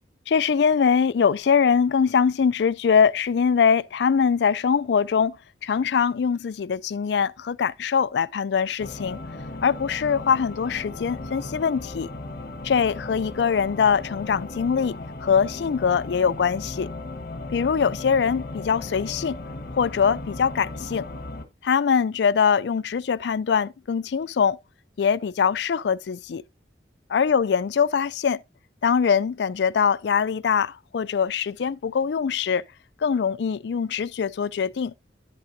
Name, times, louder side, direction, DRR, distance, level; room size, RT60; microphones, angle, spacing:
voice 1, 0.3-5.4 5.6-9.2 9.6-12.1 12.6-14.9 15.2-16.9 17.5-19.4 19.7-21.1 21.6-24.6 25.0-26.4 27.1-28.4 28.8-32.6 33.0-34.9, left 6 dB, 70° left, 0.4 m, -22 dB
sound 1, 8.8-21.5, left 2 dB, 55° left, 1.2 m, -36 dB
10.5 x 8.5 x 2.6 m
head